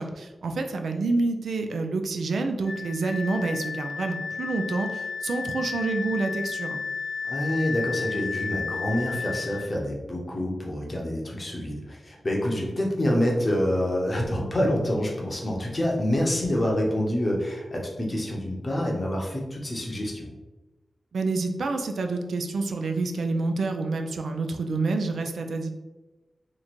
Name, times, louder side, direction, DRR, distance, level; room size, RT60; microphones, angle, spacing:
voice 1, 0.0-6.8 21.1-25.7, right 3 dB, 90° right, 5 dB, 0.4 m, -28 dB
Wind instrument woodwind instrument, 2.7-9.7, left 5 dB, 75° left, 0.5 m, -33 dB
voice 2, 7.2-20.3, left 1 dB, 25° left, -2 dB, 0.7 m, -27 dB
3.0 x 2.5 x 4.2 m, 1.1 s
wide cardioid pair, 165°, 0 cm